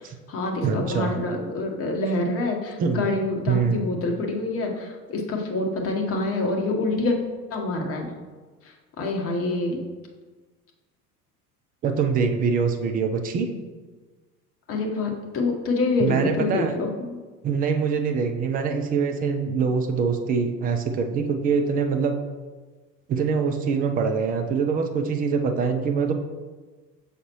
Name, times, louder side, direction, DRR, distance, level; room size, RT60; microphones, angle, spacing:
voice 1, 0.0-7.1 7.5-8.1 8.6-9.8 14.7-17.2, left 2 dB, 30° left, 1 dB, 1.0 m, -26 dB
voice 2, 0.6-1.1 2.8-3.0 3.5-3.8 11.8-13.5 16.0-16.7 17.4-22.2 23.1-26.1, right 5 dB, 20° right, 5 dB, 0.4 m, -24 dB
6.4 x 4.9 x 3.0 m, 1.3 s
figure-of-eight pair, 70°, 47 cm